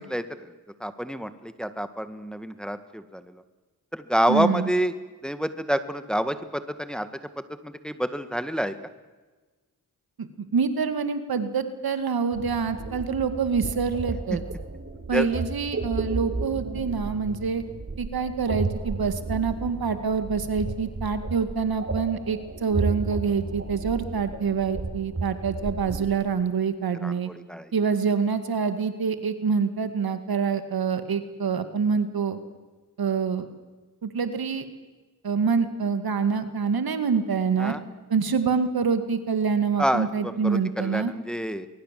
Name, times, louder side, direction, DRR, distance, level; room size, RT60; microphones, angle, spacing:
voice 1, 0.1-0.5 0.8-3.2 3.9-4.9 5.2-7.1 7.4-8.7 15.1-15.3 27.0-27.7 37.6-37.8 39.8-41.7, equal, ahead, 10 dB, 1.9 m, -28 dB
voice 2, 4.3-4.7 10.2-14.4 15.1-17.6 18.0-27.3 27.7-32.4 33.0-33.5 34.0-34.6 35.2-37.8 38.1-41.1, right 5 dB, 70° right, 9 dB, 2.2 m, -26 dB
sound 1, 12.3-26.1, right 3 dB, 40° right, 3.9 m, -33 dB
23.5 x 22.0 x 7.7 m, 1.3 s
cardioid pair, 50°, 38 cm